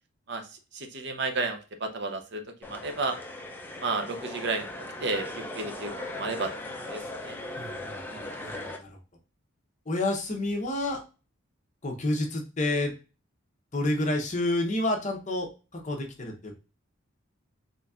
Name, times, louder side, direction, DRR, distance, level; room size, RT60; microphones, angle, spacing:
voice 1, 0.3-3.2 3.8-7.4 8.1-8.3, right 3 dB, 55° right, 6 dB, 0.6 m, -33 dB
sound 1, 2.6-8.8, left 1 dB, 10° left, 0.4 m, -38 dB
voice 2, 7.6-9.0 9.9-11.0 11.8-12.9 13.7-16.5, left 1 dB, 35° left, 2 dB, 0.8 m, -29 dB
4.1 x 3.2 x 2.3 m, 0.33 s
head